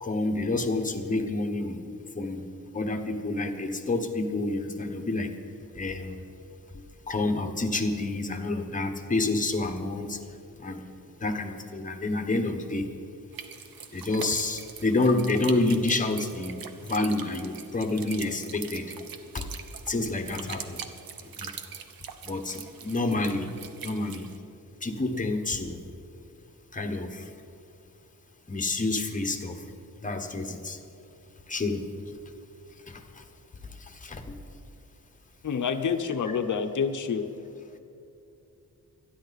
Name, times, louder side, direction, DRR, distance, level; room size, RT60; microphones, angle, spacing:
voice 1, 0.0-1.8 2.1-2.5 2.7-5.3 5.7-6.2 7.1-10.2 10.6-10.8 11.1-12.9 13.9-18.9 19.3-19.5 19.9-20.8 21.4-21.5 22.2-23.5 23.8-24.3 24.8-25.8 26.7-27.3 28.5-29.6 30.0-30.8 31.5-31.8 32.9-33.2 33.6-34.4, left 2 dB, 25° left, 5 dB, 1.1 m, -28 dB
sound 1, 13.3-24.4, right 7 dB, 90° right, 1.0 m, -43 dB
voice 2, 35.4-37.3, left 6 dB, 60° left, 7 dB, 0.8 m, -28 dB
25.5 x 10.0 x 4.1 m, 2.7 s
wide cardioid pair, 170°, 34 cm